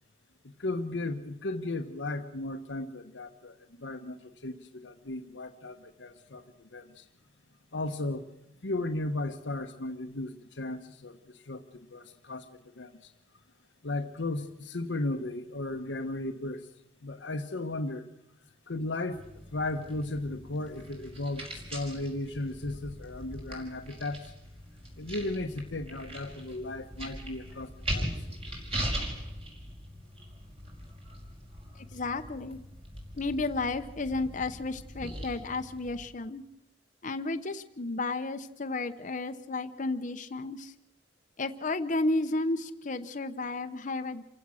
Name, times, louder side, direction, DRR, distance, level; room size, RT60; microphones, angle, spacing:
voice 1, 0.6-7.1 7.7-8.3 8.6-11.6 11.9-12.5 12.8-13.1 13.8-16.7 17.0-18.1 18.7-19.2 19.5-24.3 25.0-28.1, left 2 dB, 85° left, 5 dB, 1.1 m, -35 dB
sound 1, 19.1-36.0, equal, 35° right, 5.0 m, -40 dB
voice 2, 31.8-32.6 33.1-36.4 37.0-40.7 41.4-44.2, left 2 dB, 45° left, 7 dB, 0.9 m, -32 dB
28.0 x 15.5 x 6.4 m, 0.86 s
head